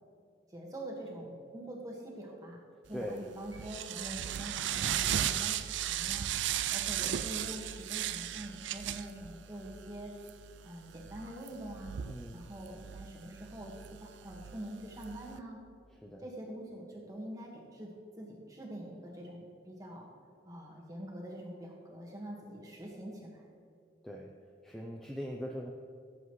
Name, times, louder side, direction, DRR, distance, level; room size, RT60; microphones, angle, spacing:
voice 1, 0.5-2.6 2.9-6.3 6.7-10.1 10.6-12.0 12.3-13.7 14.0-15.6 16.2-17.9 18.2-20.1 20.4-23.5, right 1 dB, 20° right, -2 dB, 1.6 m, -45 dB
voice 2, 2.9-3.2 12.1-12.4 16.0-16.2 24.0-24.3 24.6-25.7, equal, ahead, -1 dB, 0.5 m, -40 dB
sound 1, 3.0-15.4, right 10 dB, 75° right, 0.4 m, -37 dB
16.0 x 8.0 x 3.2 m, 2.2 s
head